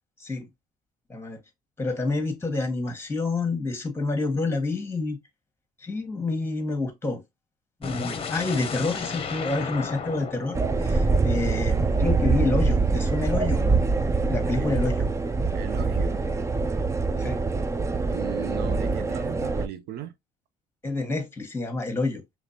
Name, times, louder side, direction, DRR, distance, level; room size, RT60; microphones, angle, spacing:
voice 1, 1.8-5.2 5.8-7.2 7.8-13.8 14.3-15.1 17.2-17.4 20.8-22.2, left 3 dB, 15° left, 1.3 m, -28 dB
sound 1, 7.8-11.8, left 5 dB, 35° left, 0.8 m, -34 dB
sound 2, 10.5-19.7, right 3 dB, 15° right, 0.4 m, -24 dB
voice 2, 15.5-16.2 18.1-20.2, right 10 dB, 70° right, 0.7 m, -37 dB
5.1 x 3.1 x 2.8 m
cardioid pair, 110°, 17 cm